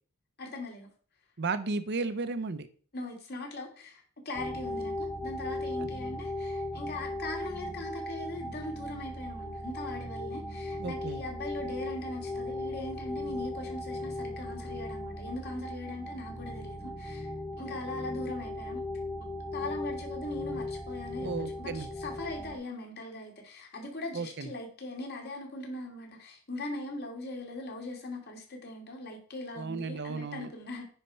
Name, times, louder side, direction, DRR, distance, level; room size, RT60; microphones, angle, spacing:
voice 1, 0.4-0.9 2.9-18.8 19.5-21.3 21.6-30.8, left 2 dB, 50° left, 1 dB, 2.8 m, -40 dB
voice 2, 1.4-2.7 10.8-11.2 21.2-21.9 24.1-24.5 29.6-30.5, right 4 dB, 55° right, 11 dB, 0.7 m, -34 dB
sound 1, 4.3-22.6, left 2 dB, 15° left, 1.1 m, -37 dB
9.7 x 4.5 x 5.6 m, 0.43 s
head